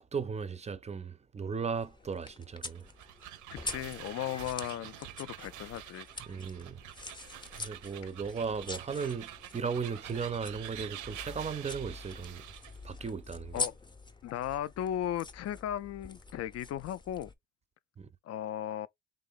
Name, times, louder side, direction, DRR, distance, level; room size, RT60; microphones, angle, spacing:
voice 1, 0.0-2.9 6.3-6.8 7.6-12.4 12.8-13.6 18.0-18.1, right 6 dB, 25° right, 0.4 m, -36 dB
sound 1, 1.7-17.3, left 3 dB, 15° left, 0.6 m, -45 dB
sound 2, 2.7-12.8, right 12 dB, 80° right, 0.6 m, -47 dB
voice 2, 3.5-6.1 13.5-13.8 14.2-17.3 18.2-18.9, left 11 dB, 55° left, 0.4 m, -36 dB
3.6 x 2.9 x 3.8 m
cardioid pair, 90°, 30 cm